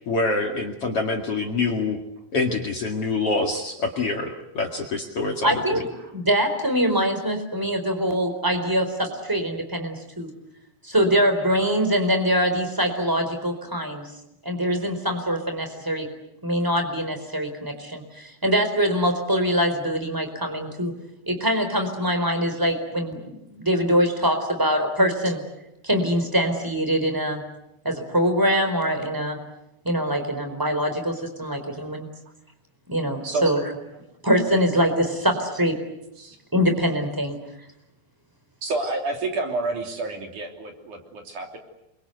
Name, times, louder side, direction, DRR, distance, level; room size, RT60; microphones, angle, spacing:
voice 1, 0.1-2.0 2.3-5.6, left 3 dB, 45° left, 2 dB, 2.6 m, -25 dB
voice 2, 5.4-5.9 6.1-10.3 10.8-14.1 14.4-16.1 16.4-20.9 21.3-25.4 25.8-27.4 27.8-29.4 29.8-32.1 32.9-33.6 34.2-35.8 36.5-37.4, equal, 5° right, 6 dB, 3.9 m, -23 dB
voice 3, 33.2-33.6 36.2-36.4 38.6-41.6, right 3 dB, 55° right, 3 dB, 4.5 m, -29 dB
28.0 x 23.5 x 8.1 m, 0.87 s
omnidirectional pair, 4.2 m